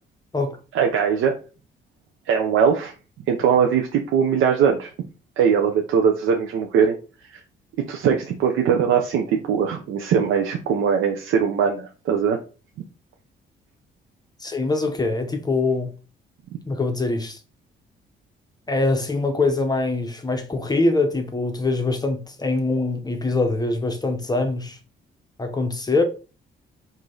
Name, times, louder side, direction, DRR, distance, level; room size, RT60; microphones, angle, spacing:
voice 1, 0.7-1.4 2.3-2.9 3.3-5.1 5.4-7.0 7.2-7.4 7.9-12.4, right 7 dB, 80° right, 0.6 m, -21 dB
voice 2, 14.4-15.9 16.7-17.4 18.7-24.8 25.4-26.0, left 3 dB, 20° left, 0.8 m, -23 dB
4.8 x 2.7 x 3.8 m
cardioid pair, 90°, 20 cm